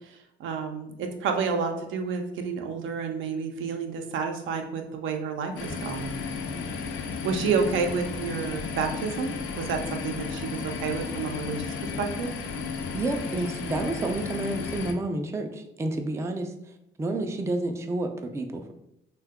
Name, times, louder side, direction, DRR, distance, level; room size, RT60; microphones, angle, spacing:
voice 1, 0.4-6.1 7.2-11.6 12.0-12.3, right 5 dB, 80° right, 4 dB, 0.5 m, -30 dB
sound 1, 5.6-14.9, left 5 dB, 90° left, 0.4 m, -34 dB
voice 2, 12.9-16.5 17.0-18.7, right 2 dB, 15° right, 5 dB, 0.3 m, -30 dB
2.7 x 2.2 x 3.5 m, 0.81 s
cardioid pair, 90°, 20 cm